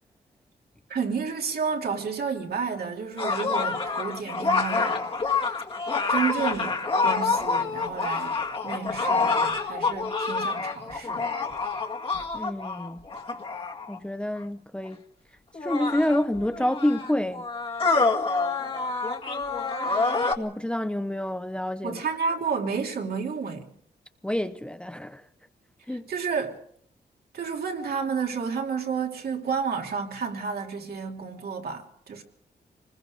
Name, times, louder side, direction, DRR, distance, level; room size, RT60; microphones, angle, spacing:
voice 1, 0.9-5.1 6.1-8.4 8.6-11.3 21.8-23.7 25.9-26.6 27.3-32.2, right 5 dB, 70° right, 3.0 m, -31 dB
sound 1, 3.2-14.0 14.9-15.0 15.5-20.3, left 4 dB, 35° left, 1.9 m, -27 dB
voice 2, 12.3-13.0 13.9-15.0 15.6-17.4 20.4-22.0 24.2-25.2 25.9-26.0, left 1 dB, 5° left, 0.8 m, -28 dB
26.5 x 20.5 x 5.0 m
wide cardioid pair, 155°, 17 cm